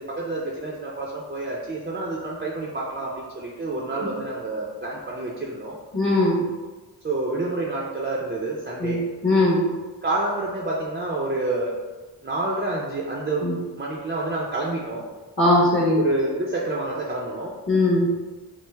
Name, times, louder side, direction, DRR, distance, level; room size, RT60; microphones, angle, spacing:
voice 1, 0.0-5.8 7.0-9.0 10.0-11.7 12.2-13.5 13.8-15.0 16.0-17.5, right 2 dB, 25° right, -3 dB, 0.6 m, -28 dB
voice 2, 5.9-6.4 8.8-9.0 9.2-9.6 13.4-13.5 15.4-16.0 17.7-18.1, left 2 dB, 30° left, -5 dB, 1.1 m, -19 dB
6.1 x 2.1 x 3.4 m, 1.3 s
wide cardioid pair, 100°, 40 cm